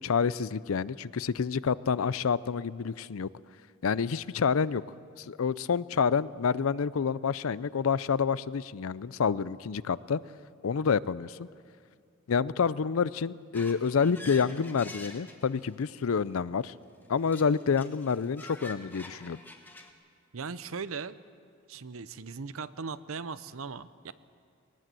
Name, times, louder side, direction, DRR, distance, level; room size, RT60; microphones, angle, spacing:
voice 1, 0.0-3.3 3.8-4.8 5.2-10.2 10.6-11.5 12.3-16.7 17.1-19.4, left 6 dB, 80° left, 18 dB, 0.5 m, -28 dB
sound 1, 13.5-16.0 17.2-19.9, left 2 dB, 10° left, 1.2 m, -46 dB
voice 2, 20.3-21.2 21.7-24.1, right 5 dB, 75° right, 15 dB, 0.7 m, -38 dB
20.0 x 19.5 x 7.6 m, 2.2 s
head